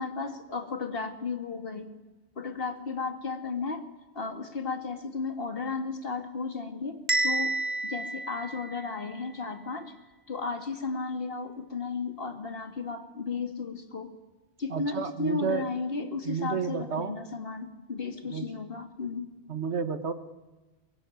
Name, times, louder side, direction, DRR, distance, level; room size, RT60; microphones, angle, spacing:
voice 1, 0.0-1.9 2.4-3.9 4.1-7.6 7.8-9.9 10.3-14.1 14.6-19.3, left 4 dB, 60° left, 7 dB, 2.3 m, -34 dB
Bell, 7.1-9.1, right 2 dB, 40° right, 2.2 m, -30 dB
voice 2, 14.7-15.6 16.2-17.1 18.2-18.5 19.5-20.1, right 6 dB, 85° right, 10 dB, 1.7 m, -31 dB
23.5 x 22.0 x 9.1 m, 1.2 s
omnidirectional pair, 1.1 m